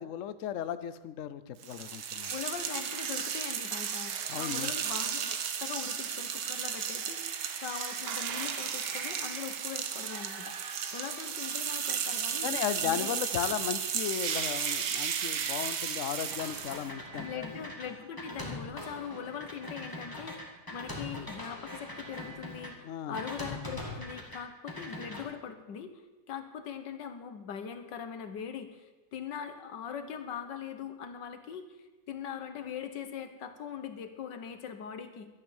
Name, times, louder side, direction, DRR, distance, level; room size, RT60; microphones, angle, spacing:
voice 1, 0.0-2.3 4.3-4.7 12.4-17.5 22.8-23.2, left 10 dB, 60° left, 13 dB, 0.9 m, -35 dB
sound 1, 1.6-16.9, right 8 dB, 80° right, 1.6 m, -34 dB
voice 2, 2.3-12.5 12.8-13.2 17.2-25.9 26.3-31.6 32.1-35.3, left 7 dB, 90° left, 8 dB, 1.8 m, -41 dB
sound 2, 16.3-22.7 23.1-24.4 24.7-25.2, left 1 dB, 10° left, 2.1 m, -42 dB
12.0 x 10.5 x 7.2 m, 1.2 s
omnidirectional pair, 1.8 m